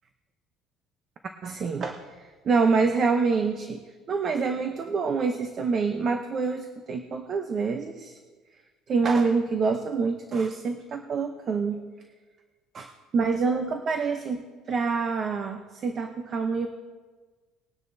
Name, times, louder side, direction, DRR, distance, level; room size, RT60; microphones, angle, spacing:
voice 1, 1.4-3.8 4.1-8.2 8.9-11.8 12.7-16.7, right 4 dB, 35° right, 6 dB, 0.7 m, -26 dB
20.5 x 9.9 x 2.7 m, 1.4 s
cardioid pair, 160°, 0 cm